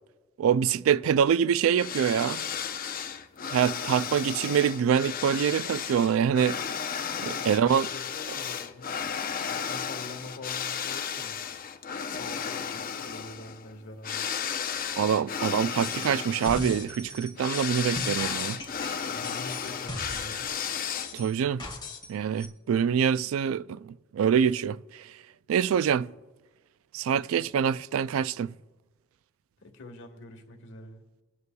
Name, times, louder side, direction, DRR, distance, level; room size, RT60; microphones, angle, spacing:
voice 1, 0.4-2.4 3.5-6.6 7.2-7.9 15.0-18.6 21.1-21.6 22.1-24.8 25.5-26.1 26.9-28.5, right 8 dB, 75° right, 0.3 m, -25 dB
sound 1, 1.8-21.4, left 7 dB, 45° left, 0.6 m, -34 dB
voice 2, 7.1-9.0 9.4-11.4 12.0-14.3 19.0-20.5 29.6-31.0, left 2 dB, 65° left, 1.4 m, -45 dB
sound 2, 15.8-16.1 16.4-20.5 20.9-22.1 22.4-22.5, left 2 dB, 20° left, 1.9 m, -38 dB
23.0 x 9.5 x 2.3 m
head